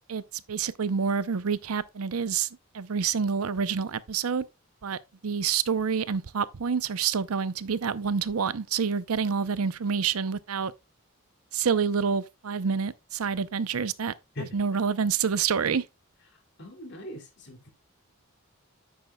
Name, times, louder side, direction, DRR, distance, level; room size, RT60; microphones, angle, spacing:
voice 1, 0.5-2.5 2.7-4.5 4.8-10.7 11.5-15.8, right 6 dB, 85° right, 0.6 m, -28 dB
voice 2, 16.6-17.7, left 1 dB, 50° left, 2.8 m, -40 dB
9.9 x 8.5 x 2.2 m
head